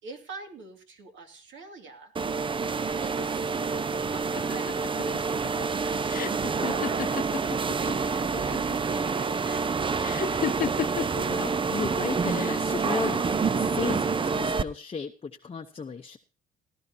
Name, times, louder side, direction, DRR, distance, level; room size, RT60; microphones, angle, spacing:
voice 1, 0.0-2.1 2.8-10.6, right 3 dB, 70° right, 4 dB, 2.6 m, -45 dB
sound 1, 2.1-14.6, right 5 dB, 25° right, 0.5 m, -28 dB
sound 2, 4.4-7.9 8.2-8.9 10.0-11.2 12.2-12.8, left 9 dB, 45° left, 0.5 m, -33 dB
voice 2, 11.3-16.2, left 5 dB, 30° left, 3 dB, 0.8 m, -35 dB
18.0 x 12.0 x 2.8 m, 0.34 s
cardioid pair, 90°, 20 cm